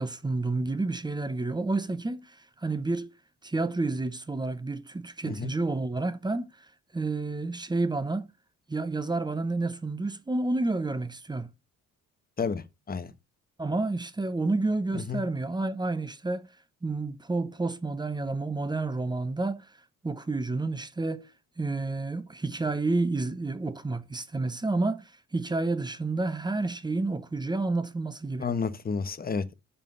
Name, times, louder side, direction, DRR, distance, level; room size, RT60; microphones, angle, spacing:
voice 1, 0.0-3.1 3.4-6.7 6.9-8.2 8.7-11.5 13.6-16.5 16.8-19.7 20.0-21.3 21.6-28.5, right 3 dB, 15° right, 0.9 m, -30 dB
voice 2, 12.4-13.1 14.9-15.2 28.4-29.5, left 5 dB, 30° left, 1.2 m, -31 dB
7.3 x 5.6 x 5.4 m
cardioid pair, 90°, 30 cm